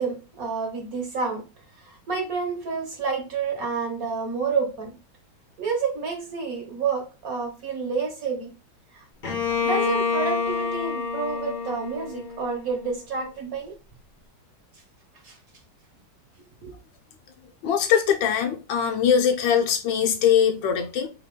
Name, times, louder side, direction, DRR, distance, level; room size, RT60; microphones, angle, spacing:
voice 1, 0.0-1.4 1.8-4.9 5.6-8.5 8.9-9.1 9.6-13.7 15.2-15.4 16.6-16.7, right 5 dB, 55° right, 1.2 m, -29 dB
Bowed string instrument, 9.2-13.0, left 5 dB, 45° left, 0.6 m, -28 dB
voice 2, 17.6-21.1, left 8 dB, 80° left, 1.4 m, -21 dB
3.4 x 3.1 x 3.7 m
omnidirectional pair, 2.1 m